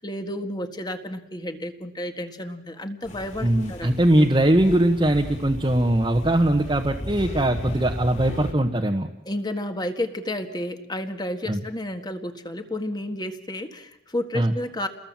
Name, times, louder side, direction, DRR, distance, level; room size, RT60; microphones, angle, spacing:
voice 1, 0.0-4.1 9.2-14.9, left 1 dB, 20° left, 7 dB, 1.8 m, -31 dB
sound 1, 3.0-8.5, equal, 35° left, 3.9 m, -35 dB
voice 2, 3.4-9.1 11.5-11.6 14.3-14.5, right 1 dB, 25° right, 1 dB, 1.3 m, -21 dB
29.5 x 21.0 x 7.6 m, 0.78 s
head